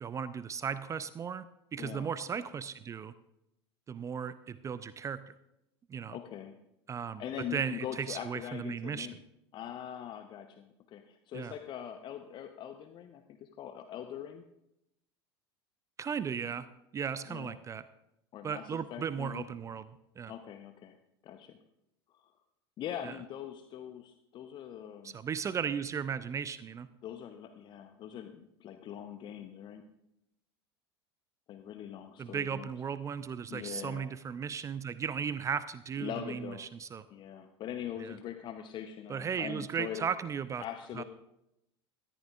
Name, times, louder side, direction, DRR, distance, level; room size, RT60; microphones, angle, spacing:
voice 1, 0.0-1.5 1.7-3.1 3.9-5.3 5.9-6.2 6.9-7.2 7.5-9.1 11.3-11.5 16.0-16.7 16.9-17.8 18.4-20.3 23.0-23.2 25.0-26.9 32.2-37.0 38.0-38.2 39.1-40.6 40.9-41.0, right 7 dB, 20° right, 15 dB, 0.5 m, -36 dB
voice 2, 1.8-2.1 6.1-6.6 7.2-9.2 9.5-14.4 17.3-17.5 18.3-19.4 20.3-21.0 21.2-21.6 22.1-22.3 22.8-25.2 27.0-29.8 31.5-32.7 33.5-34.1 36.0-36.7 37.1-40.1 40.6-41.0, left 10 dB, 35° left, 7 dB, 0.8 m, -42 dB
18.5 x 14.0 x 2.4 m, 0.84 s
figure-of-eight pair, 75°, 14 cm